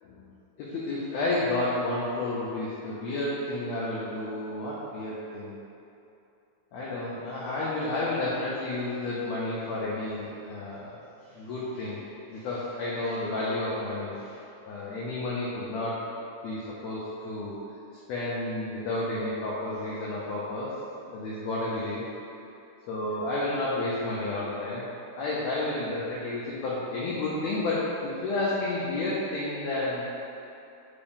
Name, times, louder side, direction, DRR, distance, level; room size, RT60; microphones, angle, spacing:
voice 1, 0.6-5.6 6.7-11.0 11.3-12.0 12.3-14.2 14.7-16.0 16.4-17.6 18.1-20.7 21.1-22.0 22.9-24.8 25.2-30.0, left 2 dB, 80° left, -7 dB, 1.6 m, -31 dB
4.7 x 2.6 x 3.5 m, 2.7 s
omnidirectional pair, 3.4 m